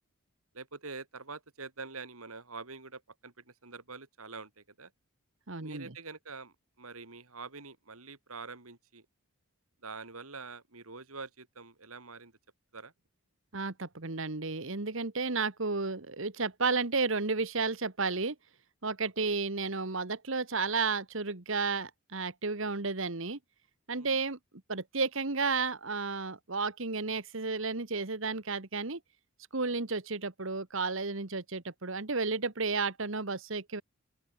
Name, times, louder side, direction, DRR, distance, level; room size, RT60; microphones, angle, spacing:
voice 1, 0.5-4.5 4.8-4.9 5.6-9.0 9.8-12.3 12.7-12.9 19.0-19.4 23.9-24.2, right 4 dB, 80° right, 3.2 m, -45 dB
voice 2, 5.5-5.9 13.5-18.3 18.8-23.4 23.9-24.4 24.7-29.0 29.5-33.8, right 4 dB, 60° right, 1.5 m, -32 dB
open air
head